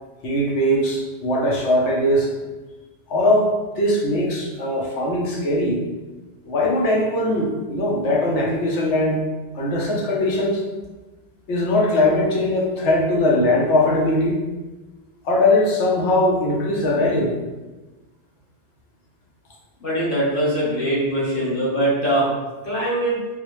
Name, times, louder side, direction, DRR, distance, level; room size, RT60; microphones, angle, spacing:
voice 1, 0.2-2.3 3.1-5.8 6.5-9.2 9.5-10.6 11.5-14.4 15.2-17.4, left 1 dB, 90° left, -2 dB, 1.0 m, -20 dB
voice 2, 19.8-22.3 22.6-23.2, right 1 dB, 50° left, -8 dB, 1.4 m, -22 dB
3.9 x 2.1 x 3.1 m, 1.2 s
omnidirectional pair, 1.2 m